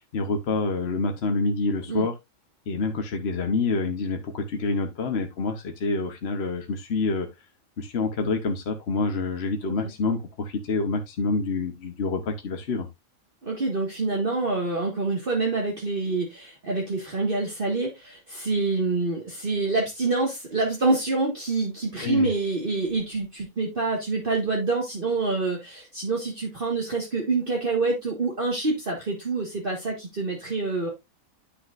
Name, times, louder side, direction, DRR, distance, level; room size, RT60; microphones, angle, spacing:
voice 1, 0.1-2.1 2.7-7.3 7.8-12.9 22.0-22.3, left 3 dB, 50° left, 1.2 m, -27 dB
voice 2, 13.4-30.9, right 3 dB, 40° right, 1.9 m, -26 dB
10.0 x 6.1 x 2.5 m
omnidirectional pair, 1.4 m